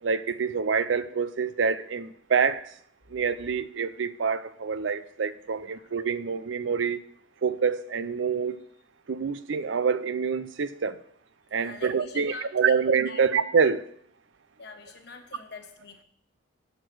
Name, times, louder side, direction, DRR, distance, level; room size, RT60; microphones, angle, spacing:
voice 1, 0.0-2.7 3.1-7.0 7.4-8.6 9.1-11.0 11.5-13.8, right 6 dB, 70° right, 0.5 m, -26 dB
voice 2, 5.4-5.9 11.6-13.2 14.6-16.0, left 3 dB, 60° left, 1.3 m, -45 dB
8.0 x 6.6 x 6.2 m
head